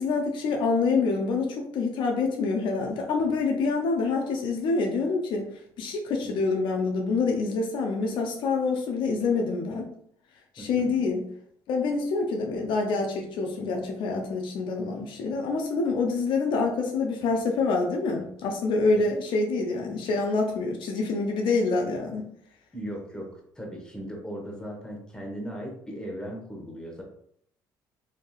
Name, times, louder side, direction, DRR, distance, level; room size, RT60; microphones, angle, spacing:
voice 1, 0.0-5.5 5.8-9.9 10.6-11.2 11.7-22.3, left 4 dB, 70° left, 2 dB, 0.5 m, -26 dB
voice 2, 10.6-11.0 19.0-19.1 22.7-23.3 23.5-27.0, equal, 10° left, -1 dB, 1.1 m, -37 dB
3.3 x 2.6 x 2.3 m, 0.67 s
supercardioid pair, 75°, 9 cm